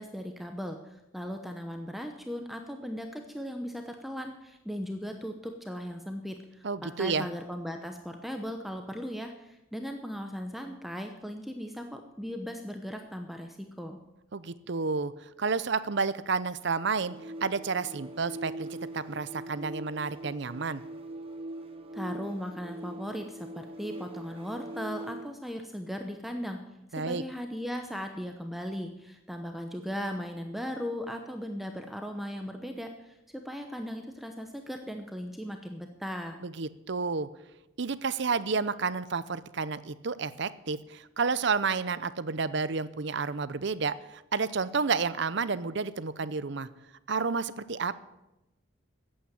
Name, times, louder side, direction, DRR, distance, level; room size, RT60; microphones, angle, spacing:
voice 1, 0.0-14.0 21.9-26.6 27.0-36.4, equal, ahead, 4 dB, 0.8 m, -38 dB
voice 2, 6.6-7.3 14.3-20.8 26.9-27.2 36.4-37.3 37.8-46.7 47.1-48.0, right 4 dB, 55° right, 16 dB, 0.6 m, -30 dB
sound 1, 17.0-25.4, right 1 dB, 30° right, 1.2 m, -42 dB
14.0 x 8.8 x 9.1 m, 0.97 s
head